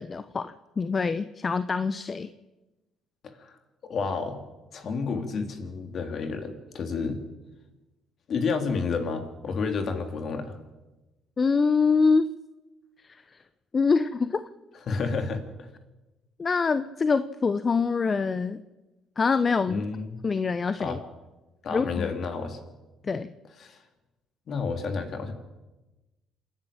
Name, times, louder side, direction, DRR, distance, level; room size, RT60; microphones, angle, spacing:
voice 1, 0.0-2.3 11.4-12.3 13.0-13.2 13.7-14.4 16.4-18.6 19.2-19.8 20.2-21.0 21.7-22.1 23.0-23.3, left 4 dB, 35° left, 13 dB, 0.9 m, -25 dB
voice 2, 3.2-3.6 3.8-4.4 4.7-7.2 8.3-10.6 14.9-15.7 19.7-20.2 20.8-21.0 21.6-22.6 23.6-23.8 24.5-25.3, left 4 dB, 55° left, 7 dB, 3.2 m, -30 dB
27.5 x 10.5 x 8.9 m, 1.1 s
hypercardioid pair, 55°, 0 cm